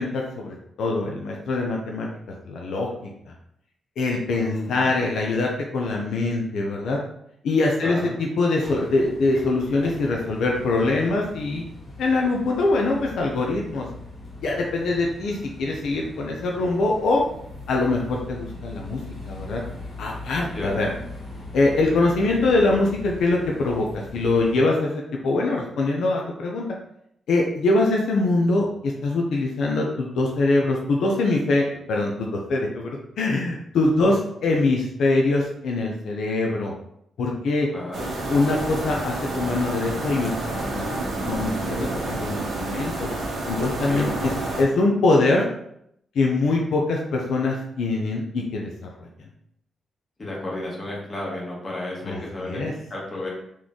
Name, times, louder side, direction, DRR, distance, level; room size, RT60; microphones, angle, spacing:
voice 1, 0.0-2.1 2.5-2.9 3.3-3.4 4.0-7.0 7.4-11.6 12.0-13.9 14.4-17.2 17.7-19.0 19.3-19.6 20.0-20.9 21.5-26.6 27.3-34.2 34.4-36.7 37.2-37.7 38.2-40.3 40.8-40.9 41.2-43.1 43.5-44.3 44.6-45.5 46.1-48.7 49.0-49.1 52.0-52.7, left 2 dB, 70° left, -1 dB, 0.6 m, -23 dB
voice 2, 4.4-4.9 7.8-8.1 20.5-20.7 34.0-34.1 37.7-38.1 43.9-44.1 50.2-52.6 52.9-53.3, left 1 dB, 25° left, -4 dB, 1.3 m, -32 dB
sound 1, 8.6-24.6, left 2 dB, 40° left, 1.5 m, -40 dB
sound 2, 37.9-44.6, right 2 dB, 65° right, 1.3 m, -29 dB
4.2 x 3.1 x 3.6 m, 0.75 s
wide cardioid pair, 165°, 0 cm